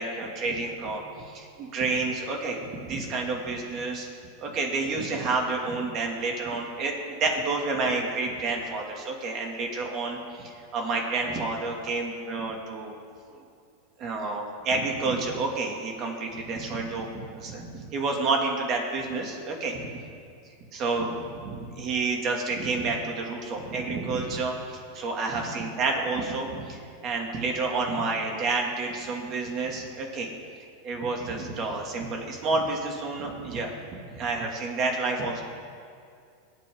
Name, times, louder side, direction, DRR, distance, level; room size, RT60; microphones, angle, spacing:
voice 1, 0.0-4.1 4.4-12.9 13.3-13.4 14.0-19.8 20.7-30.3 30.8-33.7 34.1-35.4, right 3 dB, 40° right, 1 dB, 2.4 m, -29 dB
21.5 x 8.9 x 3.8 m, 2.3 s
supercardioid pair, 130°, 0 cm